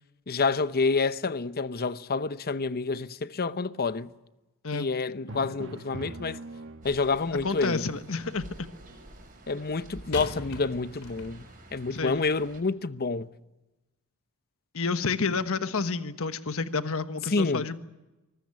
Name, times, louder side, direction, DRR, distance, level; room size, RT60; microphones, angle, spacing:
voice 1, 0.3-4.1 4.7-6.4 6.8-7.8 9.5-11.5 11.7-13.3 17.3-17.6, left 4 dB, 45° left, 0.8 m, -28 dB
Drum, 5.3-7.3, right 2 dB, 60° right, 1.5 m, -41 dB
sound 1, 6.8-12.6, right 1 dB, 40° right, 7.0 m, -50 dB
sound 2, 7.2-7.7 10.1-11.7 12.5-12.6, left 2 dB, 85° left, 3.7 m, -42 dB
voice 2, 7.4-8.7 11.9-12.3 14.7-17.8, left 4 dB, 65° left, 1.4 m, -30 dB
24.0 x 20.0 x 9.5 m
head